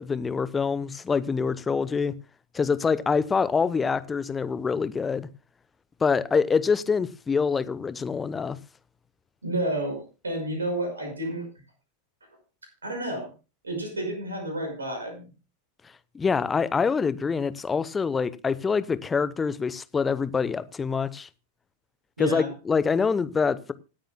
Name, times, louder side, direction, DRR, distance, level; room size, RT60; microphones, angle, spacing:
voice 1, 0.0-2.1 2.5-5.3 6.0-8.6 16.1-21.3 22.2-23.7, left 5 dB, 15° left, 0.8 m, -25 dB
voice 2, 9.4-11.5 12.8-13.3 13.6-15.3 22.2-22.5, right 1 dB, 75° right, 5.6 m, -30 dB
26.0 x 9.0 x 2.2 m
figure-of-eight pair, 90°, 0 cm